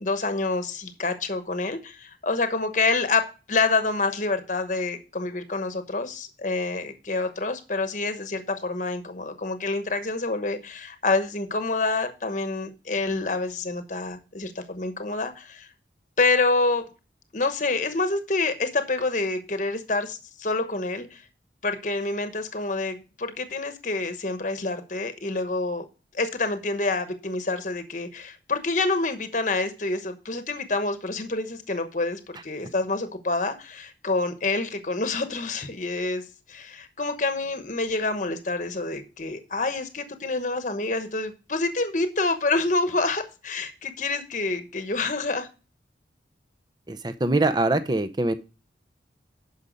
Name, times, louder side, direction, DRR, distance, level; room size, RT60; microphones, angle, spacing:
voice 1, 0.0-15.7 16.2-16.8 17.3-21.2 21.6-25.9 26.1-36.2 36.5-45.5, left 3 dB, 45° left, 8 dB, 1.0 m, -27 dB
voice 2, 46.9-48.3, right 2 dB, 25° right, 10 dB, 0.7 m, -23 dB
10.0 x 5.6 x 5.1 m, 0.32 s
head